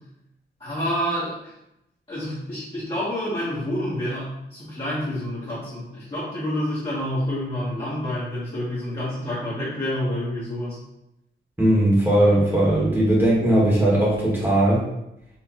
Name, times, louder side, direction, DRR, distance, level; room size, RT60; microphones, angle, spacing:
voice 1, 0.6-1.5 2.1-10.8, equal, 30° left, -11 dB, 1.2 m, -28 dB
voice 2, 11.6-14.8, right 1 dB, 10° right, -7 dB, 1.4 m, -18 dB
4.5 x 3.3 x 2.9 m, 0.85 s
wide cardioid pair, 140°, 19 cm